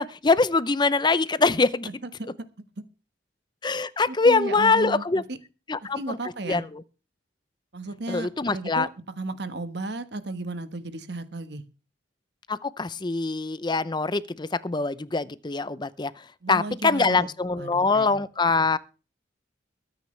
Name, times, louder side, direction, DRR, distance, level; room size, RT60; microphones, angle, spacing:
voice 1, 0.0-1.9 3.6-5.2 5.7-6.2 6.5-6.8 8.1-8.9 12.5-16.1 16.5-18.8, left 3 dB, 25° left, 0.6 m, -23 dB
voice 2, 1.8-2.3 4.1-5.4 5.9-6.6 7.7-8.9 9.2-11.6 16.4-17.3 17.6-18.2, right 2 dB, 65° right, 1.4 m, -34 dB
22.5 x 9.4 x 3.3 m
head